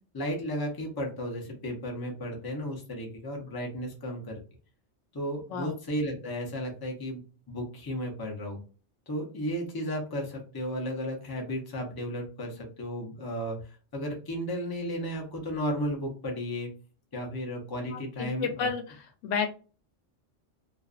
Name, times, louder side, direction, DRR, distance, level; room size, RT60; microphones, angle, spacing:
voice 1, 0.1-4.4 5.1-8.6 9.1-16.7 17.1-18.7, equal, 25° left, 1 dB, 0.5 m, -34 dB
voice 2, 17.9-18.8 19.2-19.5, left 6 dB, 90° left, 7 dB, 0.9 m, -30 dB
2.5 x 2.3 x 2.3 m, 0.36 s
omnidirectional pair, 1.2 m